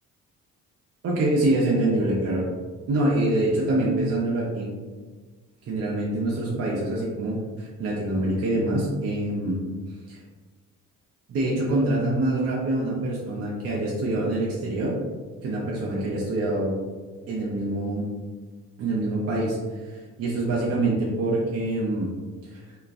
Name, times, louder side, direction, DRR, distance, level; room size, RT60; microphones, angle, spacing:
voice 1, 1.0-2.4 2.9-4.7 5.6-9.6 10.1-10.2 11.3-15.0 15.4-16.7 17.3-18.0 18.8-22.1 22.4-22.6, right 2 dB, 50° right, -5 dB, 0.6 m, -25 dB
3.0 x 2.3 x 2.4 m, 1.4 s
cardioid pair, 90°, 30 cm